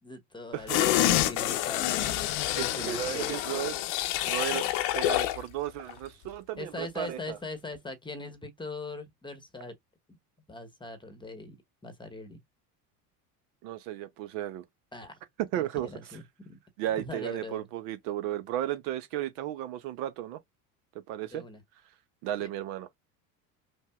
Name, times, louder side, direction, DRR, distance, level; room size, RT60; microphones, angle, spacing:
voice 1, 0.0-2.1 2.6-3.4 6.6-9.8 10.1-10.2 10.5-11.6 11.8-12.4 14.9-15.2 15.6-16.2 17.0-17.7 21.3-21.6 22.4-22.5, left 2 dB, 10° left, 0.9 m, -41 dB
sound 1, 0.7-5.4 5.8-5.9, left 14 dB, 65° left, 0.7 m, -27 dB
voice 2, 2.5-3.7 4.3-4.6 4.9-7.4 13.6-14.6 15.4-15.9 16.8-20.4 21.1-21.4 22.2-22.9, right 12 dB, 65° right, 0.7 m, -34 dB
5.3 x 2.1 x 2.3 m
hypercardioid pair, 80°, 47 cm